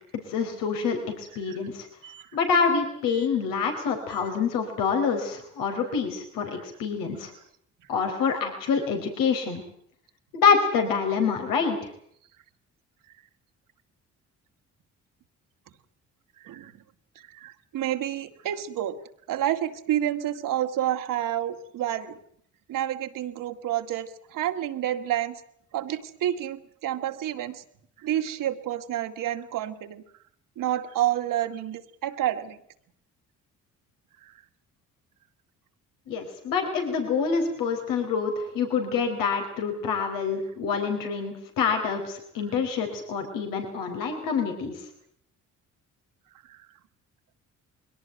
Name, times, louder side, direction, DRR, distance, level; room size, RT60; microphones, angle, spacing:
voice 1, 0.3-1.9 2.3-7.3 7.9-9.6 10.3-11.8 36.1-44.8, left 5 dB, 90° left, 4 dB, 4.3 m, -26 dB
voice 2, 17.3-19.0 19.3-22.2 22.7-25.4 25.7-27.6 28.0-30.0 30.6-32.6 34.2-34.3 46.5-46.6, right 12 dB, 80° right, 7 dB, 2.2 m, -29 dB
22.5 x 18.0 x 9.2 m, 0.66 s
cardioid pair, 75°, 32 cm